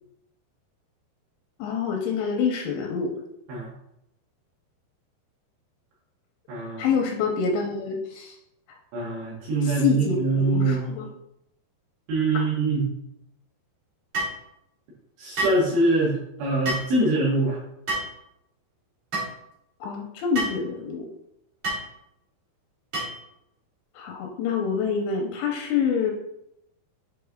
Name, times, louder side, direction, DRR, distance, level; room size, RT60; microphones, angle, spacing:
voice 1, 1.6-3.1 6.8-8.3 9.6-11.1 19.8-21.1 24.0-26.1, left 6 dB, 85° left, 1 dB, 2.7 m, -26 dB
voice 2, 6.5-6.9 8.9-10.8 12.1-12.9 15.2-17.6, right 2 dB, 70° right, -7 dB, 3.7 m, -24 dB
sound 1, 14.1-14.4 15.4-15.6 16.6-16.9 17.9-18.1 19.1-19.3 20.3-20.6 21.6-21.9 22.9-23.2, right 2 dB, 45° right, 1.9 m, -28 dB
7.8 x 4.2 x 3.6 m, 0.81 s
omnidirectional pair, 5.4 m